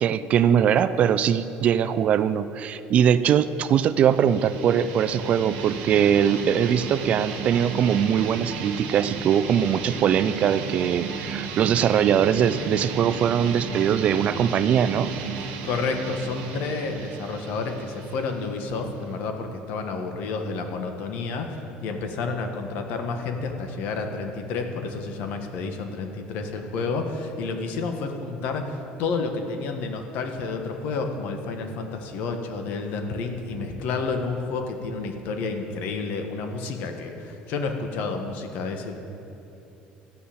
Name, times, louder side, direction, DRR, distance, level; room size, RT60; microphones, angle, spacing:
voice 1, 0.0-15.1, right 8 dB, 45° right, 14 dB, 0.4 m, -21 dB
sound 1, 3.8-19.2, right 5 dB, 90° right, 1.5 m, -34 dB
voice 2, 15.6-39.0, left 4 dB, 65° left, 5 dB, 1.4 m, -30 dB
14.0 x 5.6 x 8.5 m, 2.9 s
cardioid pair, 140°, 3 cm